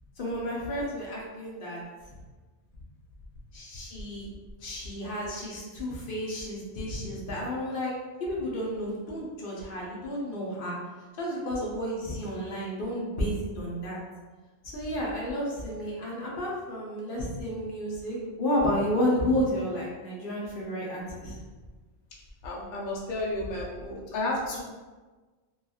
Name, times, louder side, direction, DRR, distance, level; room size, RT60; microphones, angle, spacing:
voice 1, 0.2-1.8 3.5-4.3 4.6-7.9 8.2-10.8 11.2-14.0 14.6-21.4, equal, 55° left, -4 dB, 0.8 m, -31 dB
voice 2, 22.4-24.6, left 2 dB, 70° left, -4 dB, 0.4 m, -32 dB
3.0 x 2.3 x 2.3 m, 1.3 s
omnidirectional pair, 1.3 m